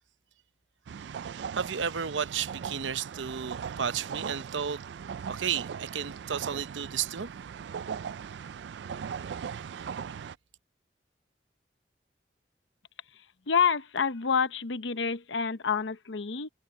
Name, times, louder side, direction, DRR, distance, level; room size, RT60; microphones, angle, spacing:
sound 1, 0.9-10.4, right 7 dB, 70° right, 0.3 m, -39 dB
voice 1, 1.5-4.8 5.3-7.3 9.4-10.0, right 7 dB, 85° right, 0.8 m, -33 dB
voice 2, 13.5-16.5, left 6 dB, 80° left, 0.8 m, -28 dB
head